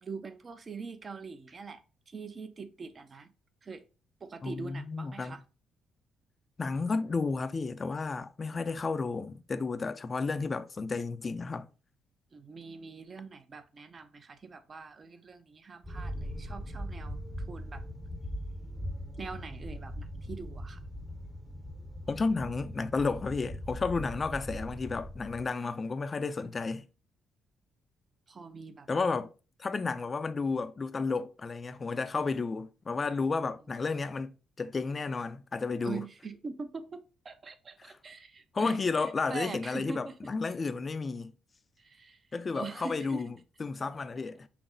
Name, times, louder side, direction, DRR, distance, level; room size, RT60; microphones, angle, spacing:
voice 1, 0.0-3.3 3.6-3.8 4.2-5.4 12.3-17.8 19.2-20.8 28.3-28.9 35.8-40.2 41.8-42.3 42.5-43.2, right 4 dB, 40° right, 0.6 m, -43 dB
voice 2, 4.4-5.4 6.6-11.7 22.1-26.8 28.9-29.3 29.6-36.0 37.8-37.9 38.5-41.3 42.3-43.3 43.6-44.5, left 4 dB, 35° left, 0.4 m, -32 dB
sound 1, 15.8-25.5, equal, ahead, 0.7 m, -40 dB
5.8 x 2.0 x 3.8 m
cardioid pair, 90°, 0 cm